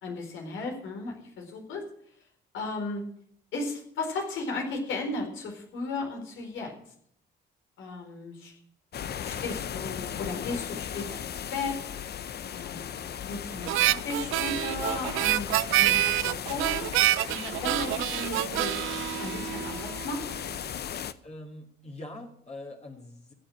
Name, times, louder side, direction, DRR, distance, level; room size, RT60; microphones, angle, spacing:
voice 1, 0.0-1.8 2.5-3.0 3.5-6.7 7.8-8.6 9.2-11.8 12.5-18.8 19.2-20.2, left 3 dB, 80° left, 2 dB, 4.3 m, -35 dB
sound 1, 8.9-21.1, left 9 dB, 55° left, 0.8 m, -36 dB
Harmonica, 13.7-20.1, right 16 dB, 90° right, 0.5 m, -27 dB
voice 2, 21.2-23.3, left 1 dB, 35° left, 0 dB, 2.5 m, -43 dB
15.5 x 7.4 x 8.5 m, 0.66 s
cardioid pair, 90°, 20 cm